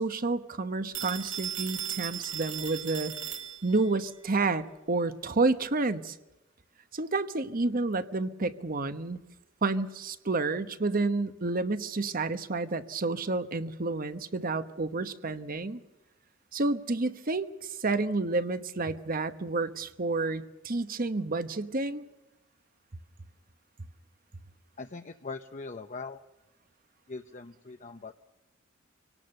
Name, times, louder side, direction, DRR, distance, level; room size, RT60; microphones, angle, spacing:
voice 1, 0.0-3.1 3.6-6.1 6.9-9.2 9.6-15.8 16.5-22.0, right 3 dB, 45° right, 11 dB, 1.1 m, -30 dB
Telephone, 0.9-3.9, right 9 dB, 65° right, 2.3 m, -37 dB
voice 2, 24.8-26.2 27.1-28.1, left 3 dB, 40° left, 7 dB, 0.8 m, -41 dB
25.5 x 18.0 x 6.7 m, 0.97 s
head